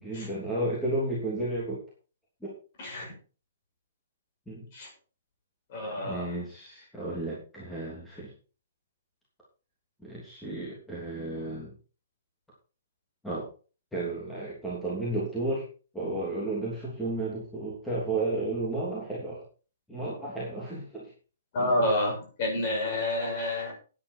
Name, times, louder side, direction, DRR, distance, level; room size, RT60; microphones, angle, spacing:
voice 1, 0.0-1.8 2.4-2.5 4.5-4.7 6.0-8.3 10.0-11.7 13.2-13.5 13.9-15.6 15.9-19.4 19.9-21.1 21.6-21.9, right 2 dB, 5° left, -7 dB, 3.1 m, -33 dB
voice 2, 2.8-3.1 4.7-4.9 5.7-6.3 21.5-23.7, left 1 dB, 30° left, 0 dB, 6.4 m, -29 dB
12.0 x 10.0 x 4.5 m, 0.37 s
hypercardioid pair, 175°, 0 cm